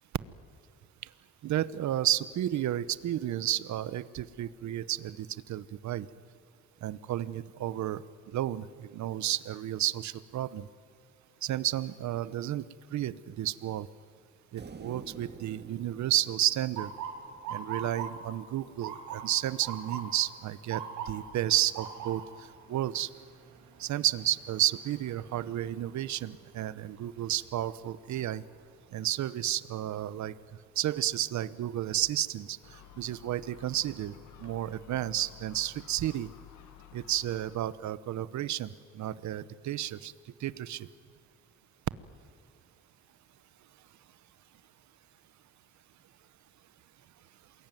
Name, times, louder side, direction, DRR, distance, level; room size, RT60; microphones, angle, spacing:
voice 1, 1.4-6.1 6.8-10.7 11.4-12.6 12.9-13.9 14.5-16.9 17.5-23.1 23.8-28.4 28.9-30.3 30.8-36.3 36.9-40.1 40.4-40.9, right 12 dB, 70° right, 17 dB, 1.0 m, -32 dB
sound 1, 14.6-17.9, right 5 dB, 35° right, 2.1 m, -50 dB
Motor vehicle (road) / Siren, 16.8-28.7 29.1-29.5 30.3-30.6 32.5-32.7 33.3-33.4 33.8-34.5, right 7 dB, 90° right, 4.0 m, -43 dB
Gull seagull, 32.6-37.7, left 13 dB, 75° left, 1.4 m, -53 dB
28.0 x 21.5 x 9.2 m, 2.1 s
cardioid pair, 90°, 30 cm